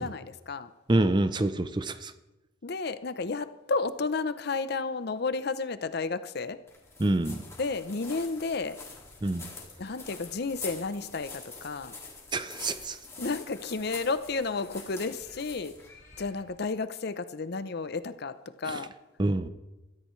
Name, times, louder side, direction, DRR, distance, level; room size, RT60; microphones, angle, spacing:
voice 1, 0.0-0.7 2.6-6.6 7.6-8.8 9.8-11.9 13.2-15.7 16.2-18.9, left 4 dB, 55° left, 12 dB, 0.6 m, -32 dB
voice 2, 0.9-2.1 7.0-7.4 9.2-9.5 12.3-13.0 18.7-18.8 19.2-19.5, right 2 dB, 25° right, 12 dB, 0.5 m, -27 dB
sound 1, 6.7-16.6, left 4 dB, 15° left, 2.2 m, -45 dB
21.0 x 13.5 x 3.2 m, 1.1 s
head